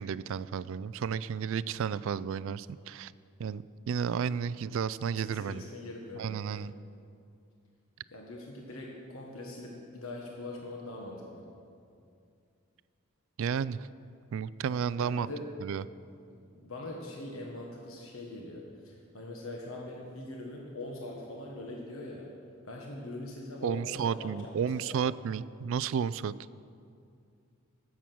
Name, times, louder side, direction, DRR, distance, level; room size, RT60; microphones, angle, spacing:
voice 1, 0.0-3.1 3.4-5.6 6.2-6.7 13.4-13.9 14.3-15.3 15.6-15.8 23.6-26.3, right 7 dB, 65° right, 18 dB, 0.3 m, -32 dB
voice 2, 5.1-6.8 8.1-11.4 15.0-15.4 16.6-22.2 22.6-25.0, left 1 dB, 70° left, -1 dB, 1.5 m, -42 dB
15.5 x 7.4 x 6.1 m, 2.4 s
head